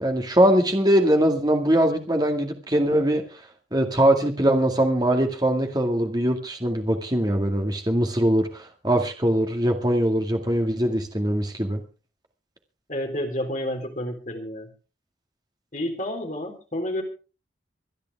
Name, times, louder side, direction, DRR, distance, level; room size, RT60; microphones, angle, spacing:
voice 1, 0.0-3.4 3.7-11.8, right 1 dB, 20° right, 2.1 m, -22 dB
voice 2, 12.9-14.7 15.7-17.0, left 1 dB, 40° left, 3.9 m, -30 dB
25.0 x 10.5 x 3.6 m
head